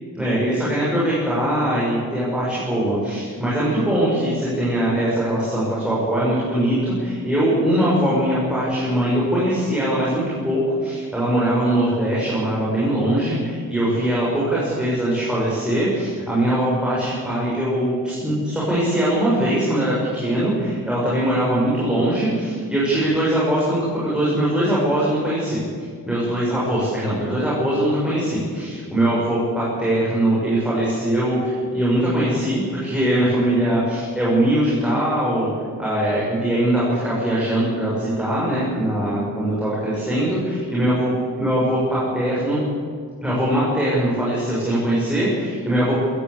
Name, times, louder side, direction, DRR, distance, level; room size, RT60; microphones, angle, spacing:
voice 1, 0.1-35.5 35.8-41.1 41.4-42.6 43.2-46.0, right 1 dB, 5° right, -8 dB, 6.7 m, -21 dB
21.5 x 15.0 x 8.4 m, 2.1 s
wide cardioid pair, 155°, 35 cm